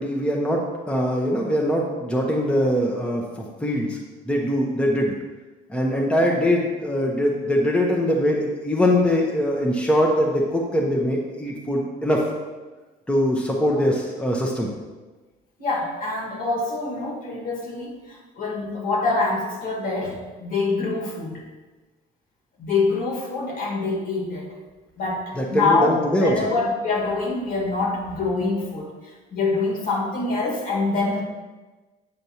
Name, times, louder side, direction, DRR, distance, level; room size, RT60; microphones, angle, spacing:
voice 1, 0.0-4.0 4.3-5.1 5.7-12.3 13.1-14.7 25.4-26.5, equal, 5° left, -1 dB, 0.8 m, -22 dB
voice 2, 15.6-21.4 22.6-24.5 25.0-28.9 29.3-31.2, left 3 dB, 55° left, -2 dB, 1.7 m, -25 dB
8.1 x 5.1 x 2.9 m, 1.2 s
cardioid pair, 110°, 17 cm